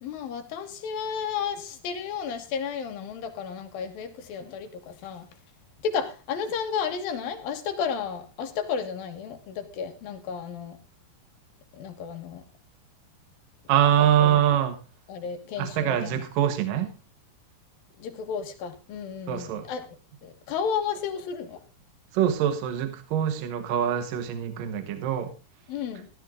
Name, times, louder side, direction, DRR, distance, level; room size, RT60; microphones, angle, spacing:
voice 1, 0.0-5.3 5.8-10.8 11.8-12.4 14.0-14.4 15.1-16.2 18.0-20.0 20.2-21.6 25.7-26.1, left 6 dB, 70° left, 8 dB, 3.3 m, -33 dB
voice 2, 13.7-14.8 15.6-16.9 19.3-19.7 22.1-25.3, right 10 dB, 70° right, 7 dB, 2.8 m, -24 dB
14.0 x 13.0 x 3.7 m, 0.30 s
omnidirectional pair, 4.3 m